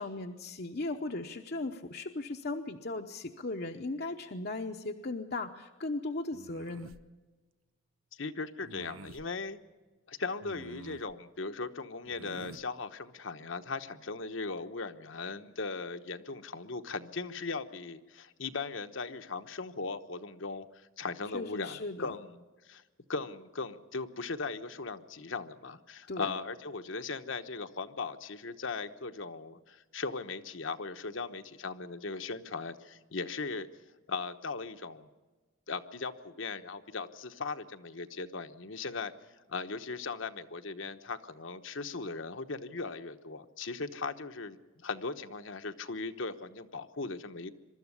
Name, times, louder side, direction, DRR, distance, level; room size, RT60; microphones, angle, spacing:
voice 1, 0.0-6.9 21.3-22.2 26.1-26.3, left 2 dB, 50° left, 4 dB, 0.8 m, -37 dB
sound 1, 6.3-7.0 8.6-9.3 10.4-11.1 12.0-12.7, right 3 dB, 85° right, 0.8 m, -49 dB
voice 2, 8.1-9.6 10.1-22.8 23.1-33.7 34.1-35.1 35.7-39.1 39.5-47.5, left 4 dB, 65° left, 8 dB, 1.1 m, -38 dB
23.5 x 13.0 x 9.7 m, 1.3 s
head